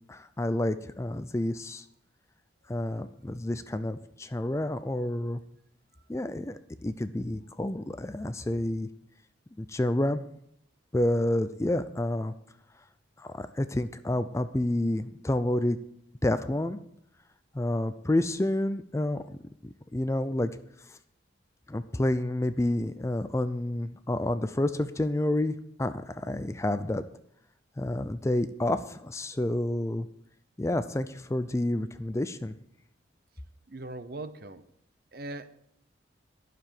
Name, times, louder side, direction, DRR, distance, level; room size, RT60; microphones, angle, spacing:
voice 1, 0.1-1.8 2.7-5.4 6.1-8.9 9.6-10.2 10.9-12.3 13.2-15.8 16.2-16.8 17.5-20.5 20.9-21.0 21.7-27.0 27.8-30.1 30.6-32.5, left 1 dB, 15° left, 12 dB, 0.4 m, -29 dB
voice 2, 33.7-34.6 35.1-35.6, right 2 dB, 55° right, 12 dB, 0.8 m, -40 dB
11.5 x 6.9 x 7.6 m, 0.74 s
head